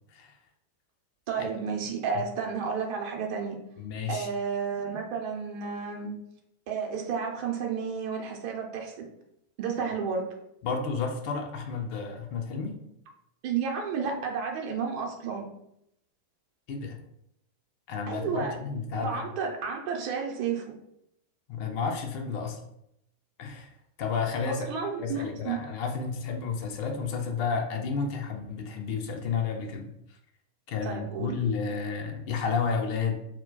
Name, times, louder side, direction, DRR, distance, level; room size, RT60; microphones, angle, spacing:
voice 1, 1.3-3.6 4.1-6.2 6.7-9.1 9.6-10.3 13.4-15.5 18.1-18.5 19.0-20.6 24.5-25.6 30.8-31.3, right 6 dB, 45° right, 1 dB, 0.6 m, -31 dB
voice 2, 3.8-4.3 10.6-12.8 16.7-17.0 17.9-19.2 21.5-22.6 23.4-23.7 24.0-24.7 25.0-29.9 30.7-33.2, left 5 dB, 45° left, 3 dB, 0.5 m, -31 dB
2.2 x 2.2 x 3.8 m, 0.78 s
figure-of-eight pair, 90°, 0 cm